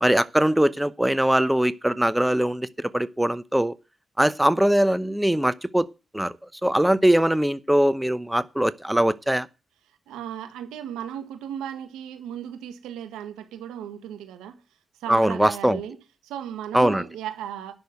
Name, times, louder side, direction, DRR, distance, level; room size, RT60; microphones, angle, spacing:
voice 1, 0.0-3.8 4.2-5.9 6.1-6.3 6.6-9.5 15.1-15.8 16.7-17.0, right 1 dB, 10° right, 0.8 m, -21 dB
voice 2, 10.1-14.6 15.0-16.0 16.2-17.7, right 10 dB, 85° right, 1.7 m, -35 dB
10.5 x 6.4 x 8.0 m
supercardioid pair, 45°, 0 cm